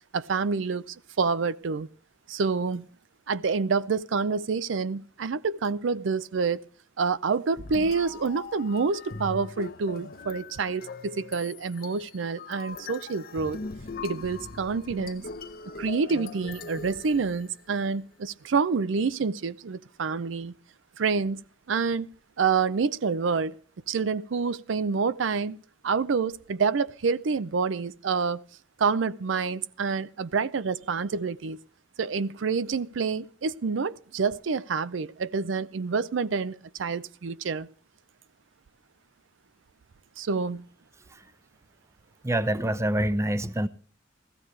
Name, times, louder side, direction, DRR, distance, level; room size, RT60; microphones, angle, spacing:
voice 1, 0.1-1.9 2.3-2.8 3.3-6.6 7.0-13.6 14.0-15.2 15.8-20.5 21.0-21.4 21.7-22.1 22.4-23.6 23.9-25.6 25.8-28.4 28.8-31.6 32.0-37.7 40.2-40.6, right 5 dB, 85° right, 0.5 m, -27 dB
sound 1, 7.6-17.9, left 4 dB, 55° left, 0.9 m, -41 dB
voice 2, 42.2-43.7, right 1 dB, 15° right, 0.6 m, -26 dB
15.5 x 14.5 x 3.2 m
head